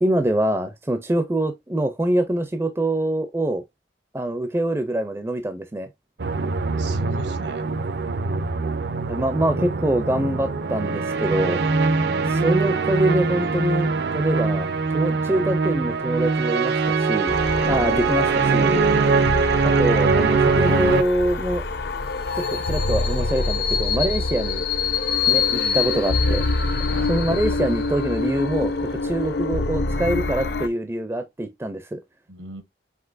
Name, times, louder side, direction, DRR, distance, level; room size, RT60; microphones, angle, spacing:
voice 1, 0.0-3.6 4.1-5.9 9.1-11.6 12.3-17.4 17.7-18.8 19.6-21.6 22.4-24.6 25.3-26.4 27.1-32.0, right 1 dB, 15° right, 0.4 m, -24 dB
sound 1, 6.2-21.0, right 4 dB, 65° right, 0.5 m, -22 dB
voice 2, 6.8-7.7 17.7-18.3 25.5-25.8 26.9-27.1 32.3-32.6, right 1 dB, 85° right, 1.1 m, -37 dB
sound 2, 17.3-30.7, left 4 dB, 65° left, 0.5 m, -25 dB
5.9 x 2.8 x 2.4 m
head